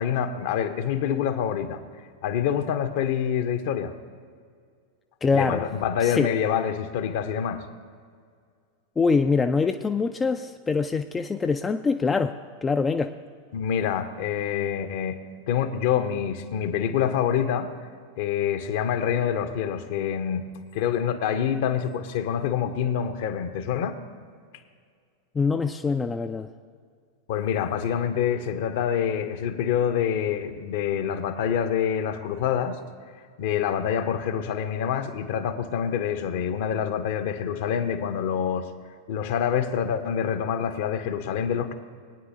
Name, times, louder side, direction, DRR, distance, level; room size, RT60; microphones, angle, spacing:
voice 1, 0.0-1.8 2.2-3.9 5.3-7.6 13.5-15.2 15.5-17.7 18.2-20.4 20.7-24.0 27.3-32.8 33.4-38.7 39.1-41.7, left 8 dB, 50° left, 10 dB, 0.8 m, -26 dB
voice 2, 5.2-5.6 6.0-6.3 9.0-13.1 25.3-26.5, left 4 dB, 15° left, 7 dB, 0.4 m, -24 dB
21.5 x 9.5 x 2.7 m, 2.1 s
figure-of-eight pair, 90°, 0 cm